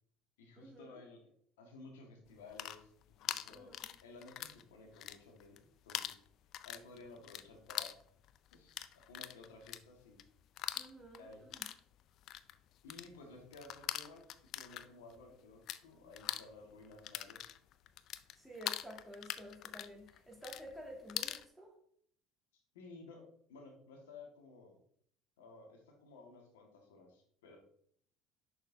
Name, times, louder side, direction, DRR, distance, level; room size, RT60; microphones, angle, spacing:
voice 1, 0.4-1.2 1.6-2.9 3.2-3.7 4.0-6.2 6.6-8.0 8.5-10.2 11.2-11.4 12.8-17.5 22.7-24.8 25.4-27.6, left 3 dB, 85° left, 2 dB, 1.5 m, -55 dB
sound 1, 2.3-4.6 4.9-5.6 5.9-15.8 16.1-21.4, left 12 dB, 60° left, 0.3 m, -43 dB
voice 2, 3.5-3.9 10.7-11.6 18.4-21.8, equal, 5° right, -2 dB, 2.0 m, -51 dB
6.3 x 6.3 x 2.6 m, 0.63 s
hypercardioid pair, 80°, 0 cm